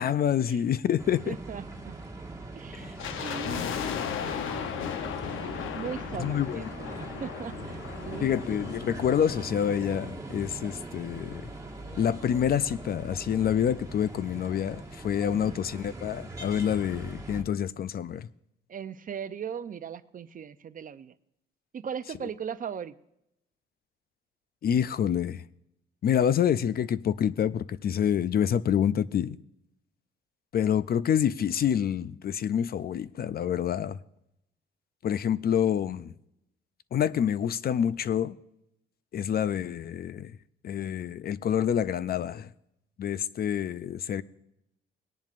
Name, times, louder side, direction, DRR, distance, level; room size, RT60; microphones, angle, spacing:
voice 1, 0.0-1.4 2.8-2.9 6.2-6.6 8.2-11.4 12.0-18.3 24.6-25.4 26.0-29.4 30.5-34.0 35.0-36.1 36.9-38.4 39.1-40.3 40.6-42.5 43.0-44.2, left 9 dB, 50° left, 0.5 m, -27 dB
Street City Traffic Busy London, 1.0-17.4, right 2 dB, 15° right, 1.6 m, -41 dB
voice 2, 1.3-2.0 2.6-4.7 5.7-7.8 8.0-8.3 15.3-15.6 18.7-21.1 21.7-22.9, right 7 dB, 45° right, 0.6 m, -39 dB
sound 1, 3.0-10.3 10.5-10.6 11.3-13.1 13.4-13.5 13.7-14.0 14.4-14.5, left 8 dB, 85° left, 0.8 m, -37 dB
19.0 x 10.5 x 2.5 m
cardioid pair, 90°, 20 cm